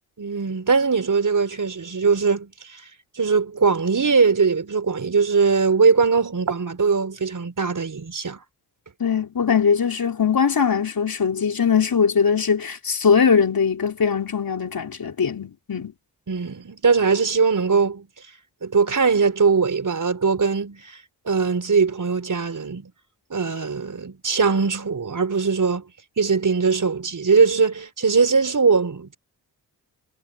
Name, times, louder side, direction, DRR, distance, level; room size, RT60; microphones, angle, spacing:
voice 1, 0.2-2.8 3.2-8.4 16.3-18.1 18.6-21.0 21.3-22.9 23.3-25.8 26.2-29.2, right 5 dB, 45° right, 5.2 m, -21 dB
voice 2, 9.0-15.9, left 6 dB, 55° left, 4.7 m, -21 dB
cardioid pair, 60°, 42 cm